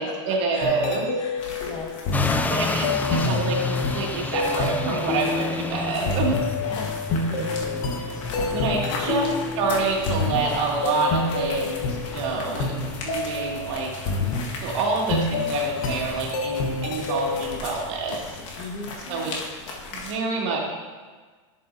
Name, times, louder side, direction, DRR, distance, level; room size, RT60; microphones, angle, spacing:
voice 1, 0.0-1.1 2.5-6.4 8.5-13.9 14.6-18.7 19.1-19.3 19.9-20.6, right 3 dB, 65° right, -2 dB, 2.3 m, -27 dB
voice 2, 0.5-2.0 5.9-6.2 6.6-9.1 18.6-18.9, left 3 dB, 30° left, -1 dB, 1.7 m, -38 dB
sound 1, 0.6-14.7 15.1-17.6, left 3 dB, 50° left, 1.3 m, -28 dB
sound 2, 1.4-20.1, left 3 dB, 70° left, 1.7 m, -38 dB
sound 3, 2.1-18.6, left 3 dB, 10° left, 0.4 m, -33 dB
11.0 x 7.6 x 2.7 m, 1.4 s
supercardioid pair, 125°, 16 cm